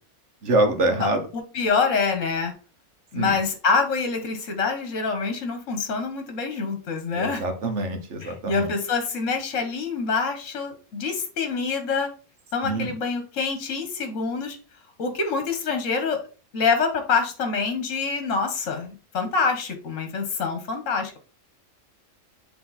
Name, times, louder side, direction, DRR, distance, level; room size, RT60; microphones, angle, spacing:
voice 1, 0.4-1.2 3.1-3.4 7.1-8.7 12.6-12.9, right 2 dB, 55° right, 6 dB, 1.4 m, -25 dB
voice 2, 1.0-2.5 3.1-7.4 8.2-12.1 12.5-14.6 15.0-16.3 16.5-21.2, left 4 dB, 65° left, 6 dB, 1.6 m, -26 dB
7.8 x 3.4 x 4.1 m, 0.36 s
omnidirectional pair, 1.5 m